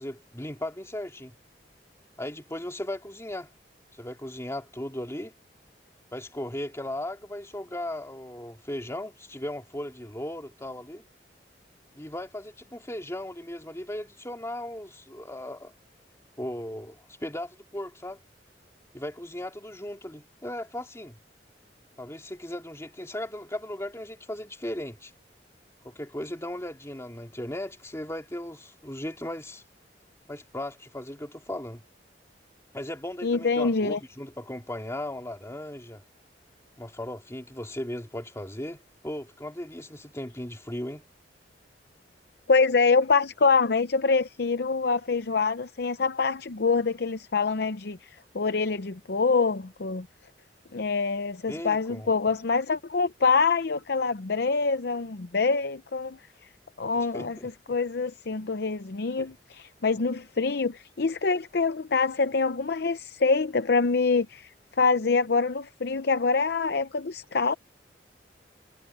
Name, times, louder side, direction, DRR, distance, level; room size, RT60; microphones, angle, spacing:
voice 1, 0.0-1.3 2.2-3.5 4.0-5.3 6.1-11.0 11.9-15.7 16.4-18.2 18.9-21.2 22.0-25.1 25.8-29.6 30.3-31.8 32.7-36.0 36.8-41.0 51.5-52.1 57.1-57.5 59.2-59.3, left 1 dB, 15° left, 2.8 m, -37 dB
voice 2, 33.2-34.0 42.5-50.1 50.7-56.2 56.8-64.5 64.8-67.5, left 4 dB, 65° left, 0.7 m, -25 dB
head